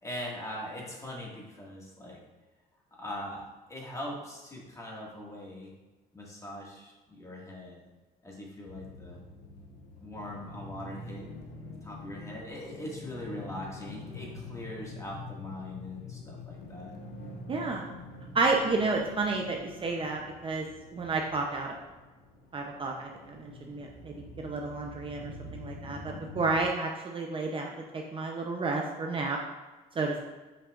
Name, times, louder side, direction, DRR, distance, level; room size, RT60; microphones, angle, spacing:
voice 1, 0.0-2.2 3.0-5.7 6.1-7.8 8.2-9.2 10.0-11.3 11.8-17.0, left 1 dB, 20° left, -3 dB, 1.8 m, -41 dB
sound 1, 8.7-26.6, left 2 dB, 85° left, 0.9 m, -46 dB
voice 2, 17.5-17.9 18.3-20.7 20.9-21.8 22.5-29.4 30.0-30.2, right 3 dB, 30° right, 1 dB, 0.6 m, -31 dB
7.5 x 5.6 x 2.4 m, 1.2 s
cardioid pair, 110°, 17 cm